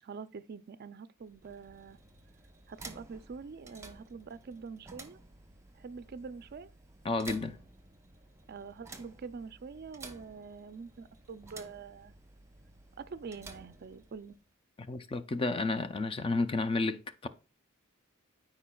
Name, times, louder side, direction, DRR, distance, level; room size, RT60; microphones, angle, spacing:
voice 1, 0.0-2.0 2.7-5.2 5.8-6.7 8.5-12.1 13.0-14.4, right 5 dB, 50° right, 0.4 m, -45 dB
sound 1, 1.2-14.5, right 3 dB, 15° right, 0.9 m, -53 dB
voice 2, 7.0-7.6 14.9-17.3, left 3 dB, 25° left, 0.4 m, -31 dB
12.5 x 4.9 x 2.3 m
head